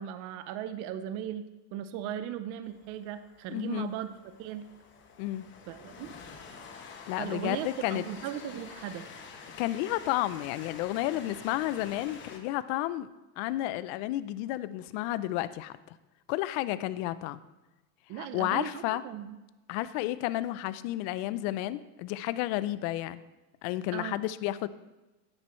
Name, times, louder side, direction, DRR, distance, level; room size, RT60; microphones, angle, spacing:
voice 1, 0.0-4.7 5.7-6.1 7.2-9.1 18.1-19.4 23.9-24.2, right 10 dB, 45° right, 11 dB, 0.7 m, -37 dB
Train, 2.6-12.4, left 5 dB, 25° left, 1.1 m, -48 dB
voice 2, 3.5-3.9 5.2-5.4 7.1-8.0 9.6-13.1 13.4-15.7 16.3-17.4 18.2-19.0 19.7-23.2 23.6-24.7, left 15 dB, 50° left, 15 dB, 0.5 m, -31 dB
10.0 x 9.8 x 3.1 m, 1.1 s
supercardioid pair, 140°, 43 cm